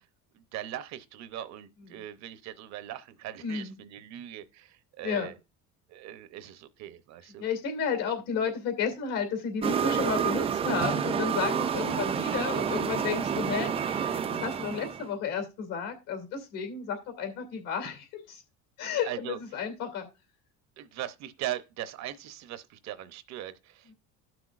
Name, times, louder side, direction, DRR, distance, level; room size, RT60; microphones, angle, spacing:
voice 1, 0.3-5.4 5.9-7.4 12.5-12.8 13.4-13.5 19.0-19.4 20.8-23.9, right 12 dB, 55° right, 0.7 m, -40 dB
voice 2, 3.4-3.7 5.0-5.3 7.4-18.4 18.8-20.1, left 6 dB, 70° left, 2.6 m, -32 dB
sound 1, 9.6-15.1, right 7 dB, 20° right, 0.3 m, -29 dB
15.5 x 6.1 x 2.4 m
cardioid pair, 145°, 33 cm